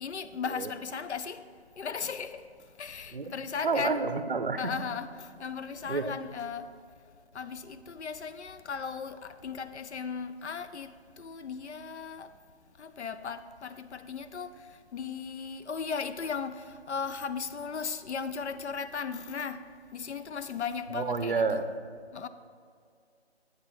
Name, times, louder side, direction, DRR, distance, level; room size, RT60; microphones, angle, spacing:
voice 1, 0.0-1.4 1.8-2.5 2.8-4.0 4.6-6.7 7.3-12.3 12.8-21.6 22.1-22.3, left 6 dB, 90° left, 0.6 m, -37 dB
voice 2, 3.6-4.8 5.9-6.1 20.9-21.6, right 4 dB, 50° right, 0.5 m, -29 dB
8.0 x 5.6 x 4.3 m
figure-of-eight pair, 180°, 33 cm